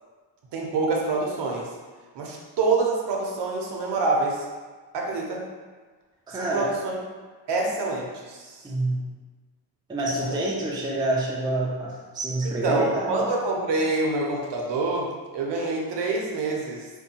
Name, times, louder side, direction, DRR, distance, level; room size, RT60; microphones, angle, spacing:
voice 1, 0.5-1.7 2.1-4.5 4.9-5.4 6.3-6.9 7.5-8.6 10.3-10.4 12.4-16.9, right 3 dB, 65° right, -1 dB, 0.8 m, -26 dB
voice 2, 6.3-6.7 8.6-9.0 9.9-13.2, right 1 dB, 10° right, -4 dB, 0.4 m, -27 dB
4.4 x 2.2 x 2.8 m, 1.4 s
cardioid pair, 135°, 44 cm